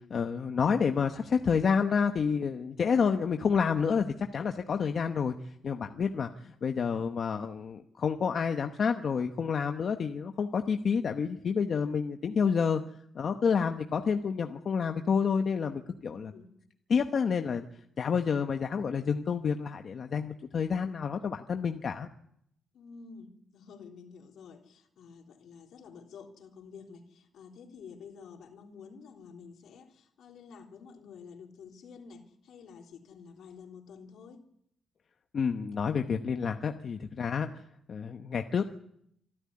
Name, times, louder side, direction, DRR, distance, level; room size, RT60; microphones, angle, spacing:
voice 1, 0.1-5.3 5.6-12.8 13.1-16.3 16.9-17.7 18.0-22.1 35.3-37.6 37.9-38.6, left 6 dB, 45° left, 6 dB, 1.0 m, -29 dB
voice 2, 16.0-16.5 22.7-34.4, left 5 dB, 75° left, 2 dB, 3.5 m, -50 dB
26.5 x 12.5 x 9.6 m, 0.75 s
cardioid pair, 145°, 0 cm